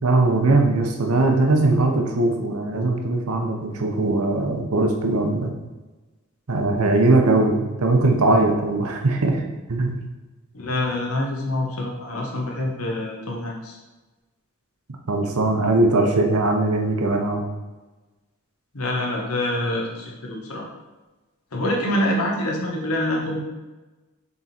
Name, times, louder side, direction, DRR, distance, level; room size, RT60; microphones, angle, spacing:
voice 1, 0.0-5.5 6.5-9.4 9.7-10.0 15.1-17.4, right 2 dB, 80° right, 3 dB, 0.9 m, -20 dB
voice 2, 10.5-13.8 18.7-20.6 21.5-23.4, left 1 dB, 85° left, -1 dB, 1.4 m, -26 dB
6.8 x 3.8 x 4.4 m, 1.2 s
head